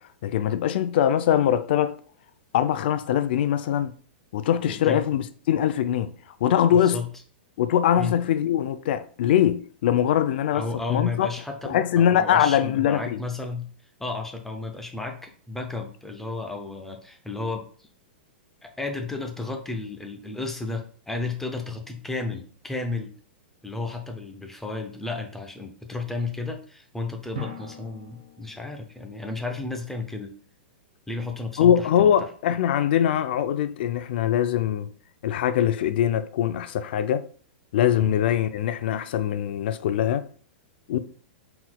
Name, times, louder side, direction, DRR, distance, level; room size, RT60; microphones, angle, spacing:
voice 1, 0.2-2.0 2.5-3.9 4.3-6.1 6.4-7.0 7.6-10.6 10.9-11.3 11.7-13.2 31.6-34.9 35.2-37.2 37.7-40.2 40.9-41.0, left 10 dB, 65° left, 0.4 m, -22 dB
voice 2, 4.7-5.1 6.7-7.1 8.0-8.2 10.5-17.9 18.6-23.1 23.6-30.3 31.1-32.3 38.0-38.2 40.9-41.0, left 3 dB, 5° left, 0.6 m, -33 dB
Drum, 27.3-29.6, left 1 dB, 75° right, 1.7 m, -40 dB
4.5 x 3.7 x 2.2 m
hypercardioid pair, 125°, 6 cm